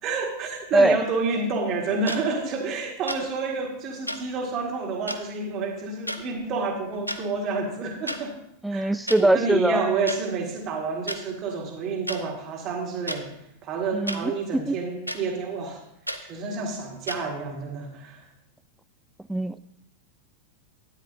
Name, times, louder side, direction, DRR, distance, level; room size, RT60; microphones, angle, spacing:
voice 1, 0.0-8.4 8.7-8.9 9.2-13.4 13.6-15.8 16.2-18.2, right 4 dB, 35° right, 2 dB, 1.8 m, -29 dB
sound 1, 2.1-2.2 3.1-3.2 4.1-4.2 5.1-5.2 6.1-6.2 6.9-7.2 8.1-8.2 9.1-9.2 10.1-10.2 11.1-11.2 12.1-12.2 13.1-13.2 14.1-14.2 15.1-15.2 16.1-16.2 17.1-17.2, equal, 90° right, 0.7 m, -31 dB
voice 2, 8.6-9.9 13.9-14.7 19.3-19.6, right 1 dB, 5° right, 16 dB, 0.3 m, -22 dB
12.5 x 10.0 x 2.7 m, 0.78 s
figure-of-eight pair, 90°, 0 cm